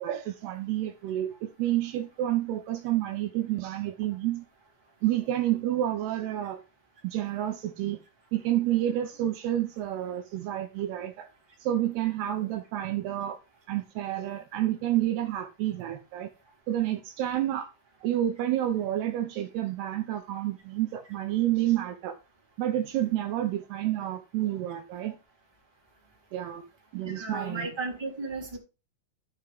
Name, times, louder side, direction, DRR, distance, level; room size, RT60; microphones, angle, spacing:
voice 1, 0.0-4.5 5.0-6.6 7.0-8.0 8.3-11.3 11.6-13.4 13.7-16.3 16.7-17.7 18.0-22.2 22.6-25.2 26.3-26.6 26.9-27.7, right 13 dB, 75° right, 2.7 m, -29 dB
voice 2, 27.0-28.6, right 3 dB, 5° right, 2.4 m, -34 dB
13.0 x 5.5 x 3.4 m
omnidirectional pair, 5.0 m